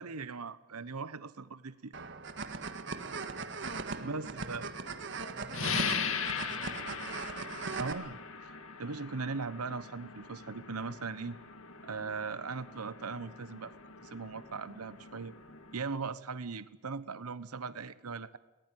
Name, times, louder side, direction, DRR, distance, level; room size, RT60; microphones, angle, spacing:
voice 1, 0.0-1.9 3.0-3.1 4.0-4.7 7.8-8.2 8.5-11.4 11.8-13.7 14.0-15.3 15.7-18.4, right 4 dB, 90° right, 15 dB, 1.0 m, -39 dB
sound 1, 1.9-7.9, right 4 dB, 55° right, 1.8 m, -39 dB
voice 2, 4.0-8.1, left 1 dB, 40° left, 2 dB, 7.8 m, -54 dB
sound 2, 5.5-15.8, left 6 dB, 65° left, 2.2 m, -40 dB
22.5 x 20.5 x 9.2 m, 1.0 s
head